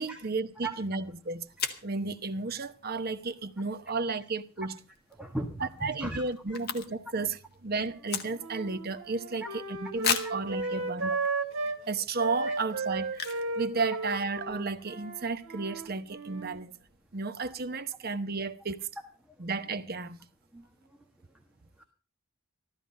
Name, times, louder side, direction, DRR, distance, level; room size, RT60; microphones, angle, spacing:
voice 1, 0.0-1.5 1.8-4.8 5.6-11.2 11.9-16.7 17.1-18.9 19.4-20.2, right 3 dB, 45° right, 0.9 m, -33 dB
sound 1, 0.9-1.0 1.6-1.9 4.9-5.1 5.4-5.5 5.7-7.2 7.5-8.7 9.2-9.3 10.0-10.5 11.2-11.3 11.8-11.9 13.1-13.6 13.8-13.9 14.1-14.4, left 7 dB, 45° left, 1.5 m, -33 dB
voice 2, 5.2-6.2 6.5-6.6 9.4-9.5 20.5-20.6 21.8-21.9, right 2 dB, 5° right, 1.5 m, -36 dB
Wind instrument woodwind instrument, 7.8-11.8 12.2-16.6, right 3 dB, 65° right, 2.5 m, -35 dB
14.5 x 13.0 x 5.4 m
head